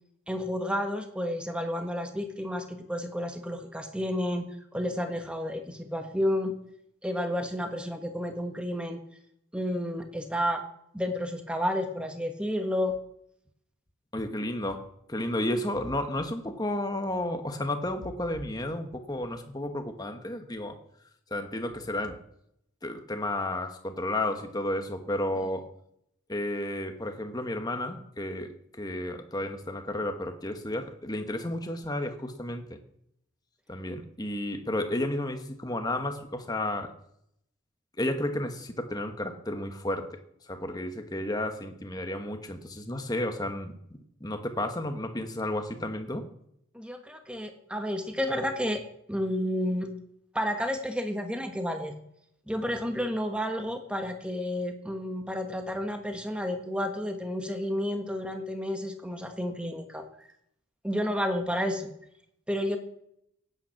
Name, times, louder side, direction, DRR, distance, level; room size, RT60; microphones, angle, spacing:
voice 1, 0.3-6.5 7.0-9.0 9.5-10.6 10.9-12.9 46.7-48.8 49.1-49.9 50.3-51.9 52.5-60.0 60.8-61.9 62.5-62.8, equal, 5° right, 5 dB, 1.3 m, -31 dB
voice 2, 14.1-20.8 21.3-22.2 22.8-25.7 26.3-32.8 33.7-36.9 38.0-40.1 40.5-43.7 44.2-46.2, left 1 dB, 20° left, 6 dB, 1.2 m, -32 dB
16.5 x 9.2 x 5.9 m, 0.75 s
head